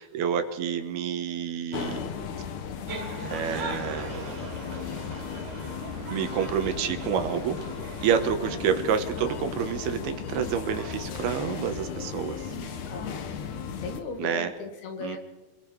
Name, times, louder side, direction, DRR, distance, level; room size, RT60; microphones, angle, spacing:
voice 1, 0.0-2.1 3.2-4.2 6.1-7.6 8.0-12.4 14.2-14.5 15.0-15.2, right 8 dB, 80° right, 7 dB, 3.3 m, -28 dB
sound 1, 1.7-14.0, left 6 dB, 60° left, 2.6 m, -36 dB
sound 2, 2.9-8.1, right 4 dB, 55° right, 3.8 m, -40 dB
voice 2, 12.9-13.4 13.7-15.2, left 4 dB, 75° left, 3 dB, 4.3 m, -38 dB
26.5 x 21.5 x 4.8 m, 1.2 s
omnidirectional pair, 4.4 m